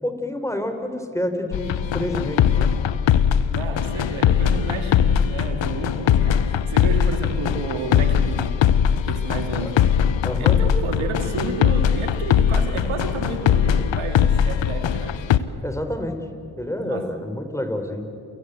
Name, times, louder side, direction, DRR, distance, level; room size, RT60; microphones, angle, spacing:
voice 1, 0.0-2.7 9.6-9.7 10.2-10.6 15.6-16.3 16.6-18.1, left 1 dB, 5° left, 6 dB, 3.7 m, -28 dB
sound 1, 1.5-15.4, left 9 dB, 70° left, 0.9 m, -20 dB
voice 2, 3.5-8.5 9.1-9.7 10.4-15.1 16.8-17.0, right 4 dB, 90° right, 6 dB, 2.3 m, -31 dB
28.5 x 16.0 x 8.1 m, 2.7 s
supercardioid pair, 45°, 47 cm